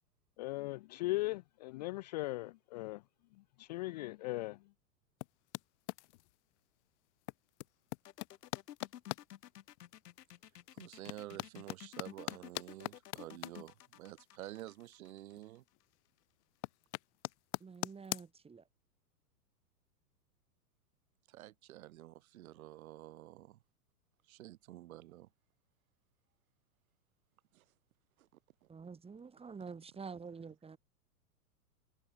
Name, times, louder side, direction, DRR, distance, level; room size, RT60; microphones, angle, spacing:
voice 1, 0.4-3.0 3.6-4.6, left 20 dB, 30° left, 0.4 m, -38 dB
sound 1, 5.2-6.4 7.2-9.2 9.8-9.9 10.5-15.1 15.3-15.9 16.2-18.3, left 22 dB, 45° left, 0.9 m, -42 dB
sound 2, 8.0-15.8, left 12 dB, 75° left, 0.8 m, -53 dB
voice 2, 10.7-15.6 21.3-23.6 24.3-25.3 27.5-27.6 28.2-28.3 28.6-28.7, right 15 dB, 60° right, 2.1 m, -50 dB
voice 3, 17.6-18.7 28.7-30.8, right 5 dB, 10° right, 2.2 m, -48 dB
hypercardioid pair, 105°, 48 cm